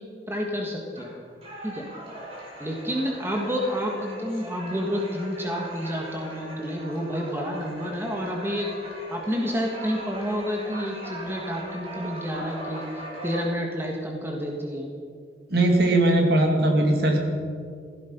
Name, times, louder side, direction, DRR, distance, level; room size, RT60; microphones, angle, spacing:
voice 1, 0.3-1.1 1.6-1.8 2.6-8.7 9.1-12.8 13.2-14.9, equal, 15° right, 0 dB, 1.6 m, -29 dB
sound 1, 0.9-13.5, right 1 dB, 35° right, 3.9 m, -40 dB
voice 2, 15.5-17.2, right 1 dB, 60° right, 1 dB, 2.4 m, -20 dB
16.0 x 15.5 x 5.4 m, 2.2 s
head